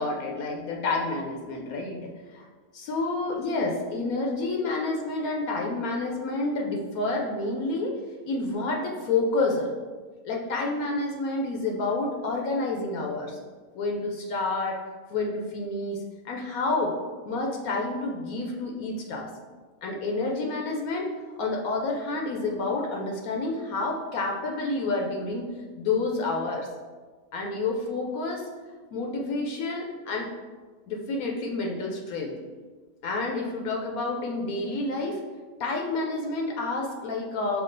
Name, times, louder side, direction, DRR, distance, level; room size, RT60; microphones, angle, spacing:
voice 1, 0.0-2.5 2.7-7.9 8.2-9.7 10.2-13.4 13.7-14.8 15.1-16.9 17.2-19.3 19.8-25.5 25.8-26.7 27.3-28.5 28.9-30.3 30.9-32.4 33.0-35.2 35.6-37.6, left 3 dB, 75° left, 0 dB, 1.0 m, -29 dB
5.9 x 2.3 x 3.8 m, 1.4 s
omnidirectional pair, 1.6 m